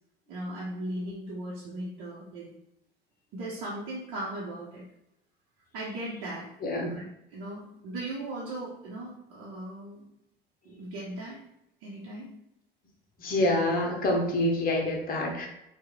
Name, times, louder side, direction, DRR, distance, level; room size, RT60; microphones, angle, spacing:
voice 1, 0.3-2.5 3.3-4.8 5.7-6.5 6.9-7.0 7.3-10.1 10.6-11.4 11.8-12.3, right 1 dB, 50° right, -6 dB, 0.9 m, -37 dB
voice 2, 6.6-6.9 13.2-15.5, left 1 dB, 30° left, 1 dB, 0.9 m, -26 dB
4.6 x 2.4 x 2.3 m, 0.82 s
figure-of-eight pair, 65°, 29 cm